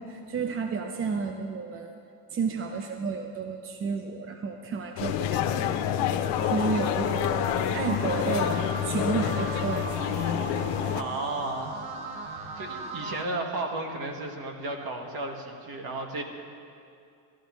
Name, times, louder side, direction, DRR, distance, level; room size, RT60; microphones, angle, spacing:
voice 1, 0.0-2.0 2.3-5.7 5.9-6.1 6.5-9.9, right 5 dB, 30° right, 5 dB, 0.5 m, -31 dB
sound 1, 5.0-11.0, left 9 dB, 70° left, 0.7 m, -28 dB
sound 2, 6.4-13.2, right 3 dB, 80° right, 1.5 m, -38 dB
voice 2, 10.9-11.8 12.6-16.2, right 2 dB, 55° right, 3 dB, 1.6 m, -33 dB
13.5 x 13.5 x 3.1 m, 2.5 s
cardioid pair, 110°, 44 cm